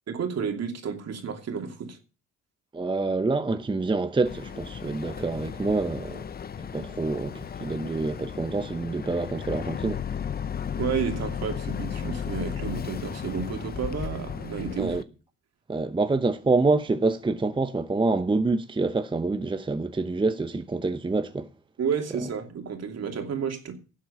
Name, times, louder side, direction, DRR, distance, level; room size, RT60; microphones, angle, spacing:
voice 1, 0.1-2.0 10.8-14.9 21.8-23.8, right 6 dB, 55° right, 2.8 m, -31 dB
voice 2, 2.7-6.2 6.7-10.0 14.8-15.0 15.7-21.5, right 3 dB, 15° right, 0.8 m, -26 dB
Boat Water vehicle, 4.2-15.0, left 7 dB, 30° left, 0.6 m, -35 dB
12.0 x 7.5 x 6.7 m
cardioid pair, 90°, 30 cm